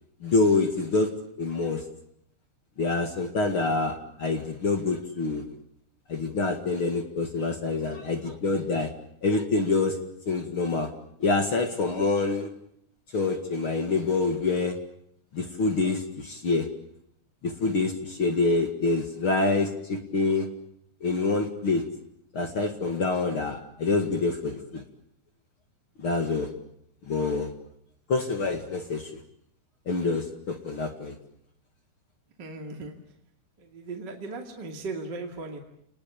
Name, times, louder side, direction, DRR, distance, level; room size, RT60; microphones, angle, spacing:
voice 1, 0.2-1.1 1.4-1.8 2.8-5.4 6.1-8.9 9.2-10.0 10.3-10.9 11.2-12.5 13.1-14.8 15.3-16.7 17.4-20.5 21.0-21.8 22.3-24.8 26.0-26.5 27.0-27.5 28.1-29.1 29.9-31.2, left 3 dB, 45° left, 6 dB, 1.9 m, -26 dB
voice 2, 32.4-33.0 33.6-35.6, right 3 dB, 30° right, 2 dB, 2.2 m, -37 dB
29.5 x 20.0 x 8.6 m, 0.72 s
omnidirectional pair, 5.2 m